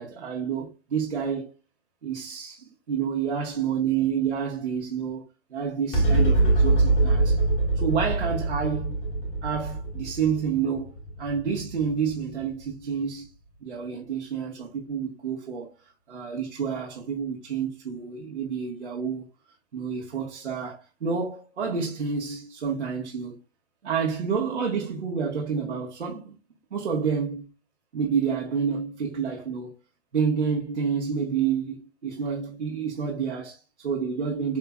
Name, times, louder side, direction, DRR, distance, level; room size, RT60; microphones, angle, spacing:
voice 1, 0.0-1.5 2.0-7.4 7.8-9.0 9.4-10.9 11.2-13.3 13.6-15.7 16.1-19.3 19.7-23.4 23.8-26.3 26.7-27.5 27.9-29.7 30.1-34.6, right 6 dB, 85° right, 1.5 m, -29 dB
sound 1, 5.9-12.6, right 2 dB, 25° left, 2.0 m, -24 dB
7.7 x 2.9 x 2.3 m
hypercardioid pair, 150°, 33 cm